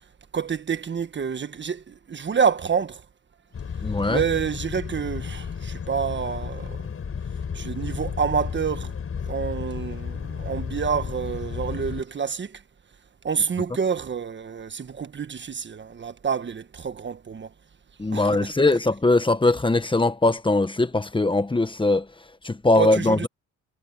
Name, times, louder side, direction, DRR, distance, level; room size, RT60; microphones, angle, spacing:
voice 1, 0.3-3.0 4.1-6.8 7.5-8.9 9.3-12.6 13.2-17.5 18.1-18.5 22.8-23.3, right 6 dB, 40° right, 1.4 m, -28 dB
sound 1, 3.5-12.0, left 6 dB, 45° left, 7.2 m, -33 dB
voice 2, 3.8-4.2 18.0-22.1 22.4-23.3, left 2 dB, 15° left, 1.5 m, -21 dB
cardioid pair, 90°, 30 cm